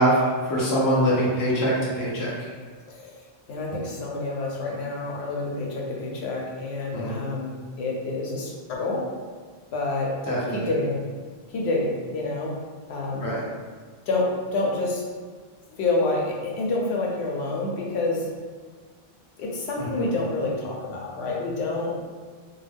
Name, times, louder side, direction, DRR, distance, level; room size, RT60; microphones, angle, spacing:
voice 1, 0.0-2.3 6.9-7.2 10.3-10.7 13.2-13.5 19.8-20.0, right 1 dB, 25° left, -7 dB, 0.5 m, -23 dB
voice 2, 3.5-9.0 9.7-10.1 10.5-11.0 11.5-12.5 12.9-13.2 14.1-15.0 15.7-18.3 19.4-21.9, left 2 dB, 85° left, -2 dB, 0.9 m, -28 dB
2.3 x 2.2 x 3.3 m, 1.5 s
omnidirectional pair, 1.1 m